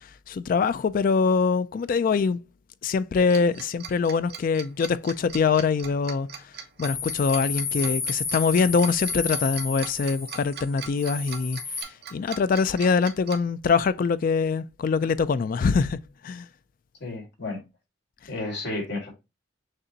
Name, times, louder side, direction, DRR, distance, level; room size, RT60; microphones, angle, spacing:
voice 1, 0.0-2.4 2.8-6.4 6.8-16.5, left 5 dB, 45° left, 0.3 m, -24 dB
Tick-tock, 3.3-13.4, right 7 dB, 55° right, 0.8 m, -39 dB
sound 1, 6.8-11.8, left 5 dB, 20° left, 1.1 m, -32 dB
voice 2, 17.0-17.6 18.3-19.1, left 2 dB, 65° left, 2.1 m, -32 dB
6.6 x 2.5 x 2.7 m
head